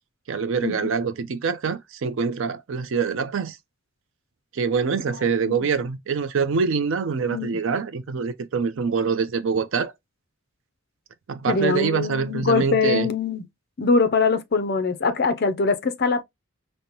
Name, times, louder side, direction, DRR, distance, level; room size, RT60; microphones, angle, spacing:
voice 1, 0.3-3.6 4.5-9.9 11.3-13.1, right 5 dB, 65° right, 0.4 m, -25 dB
voice 2, 11.5-13.4 13.8-16.2, left 4 dB, 50° left, 0.5 m, -23 dB
5.2 x 2.1 x 2.8 m
head